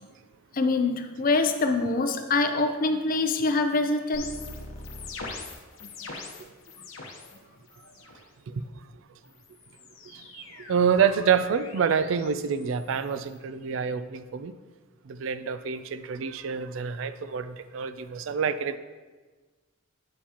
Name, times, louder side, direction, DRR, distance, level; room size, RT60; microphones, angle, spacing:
voice 1, 0.5-4.3 5.8-5.9, left 3 dB, 45° left, 6 dB, 0.6 m, -25 dB
sound 1, 4.1-7.4 7.7-8.2 9.2-13.4, left 3 dB, 70° left, 1.0 m, -43 dB
voice 2, 10.1-10.4 10.7-14.5 15.1-18.8, right 7 dB, 65° right, 13 dB, 0.3 m, -27 dB
8.6 x 7.1 x 2.9 m, 1.3 s
head